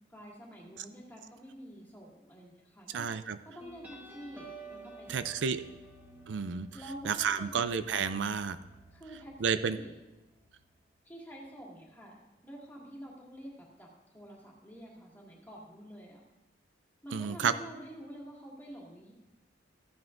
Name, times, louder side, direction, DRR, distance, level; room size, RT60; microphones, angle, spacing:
voice 1, 0.1-3.1 3.4-5.3 5.6-5.8 6.7-7.6 8.9-10.0 11.0-13.9 14.1-16.2 17.0-19.1, equal, 10° left, -3 dB, 2.1 m, -48 dB
voice 2, 2.9-3.4 5.1-5.6 6.3-6.7 7.0-8.6 9.4-9.8 17.1-17.5, right 6 dB, 85° right, 12 dB, 0.4 m, -30 dB
sound 1, 3.6-10.8, right 2 dB, 10° right, 1.3 m, -53 dB
14.5 x 9.3 x 2.6 m, 1.0 s
head